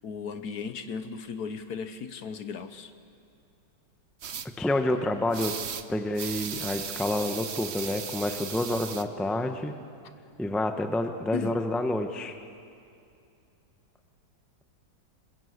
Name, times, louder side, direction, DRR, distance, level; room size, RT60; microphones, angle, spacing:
voice 1, 0.0-2.9 11.3-11.6, left 5 dB, 60° left, 10 dB, 1.3 m, -36 dB
sound 1, 4.2-4.5 5.3-5.8 6.1-9.0, right 7 dB, 55° right, 0.7 m, -36 dB
voice 2, 4.6-5.6 5.9-9.8 10.4-12.3, left 1 dB, ahead, 6 dB, 0.4 m, -28 dB
26.5 x 21.0 x 8.1 m, 2.6 s
omnidirectional pair, 2.2 m